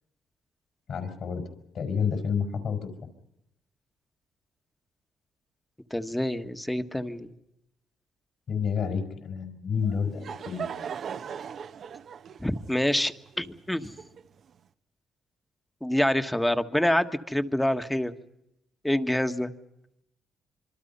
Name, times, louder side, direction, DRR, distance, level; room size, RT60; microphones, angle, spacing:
voice 1, 0.9-1.4 1.7-2.8 8.5-10.7, left 6 dB, 60° left, 6 dB, 5.0 m, -29 dB
voice 2, 5.9-7.3 12.4-13.9 15.8-18.1 18.8-19.5, left 1 dB, 5° left, 8 dB, 1.5 m, -26 dB
Laughter / Crowd, 9.8-14.5, right 7 dB, 60° right, 1.0 m, -39 dB
26.0 x 25.0 x 5.6 m, 0.83 s
cardioid pair, 90°, 0 cm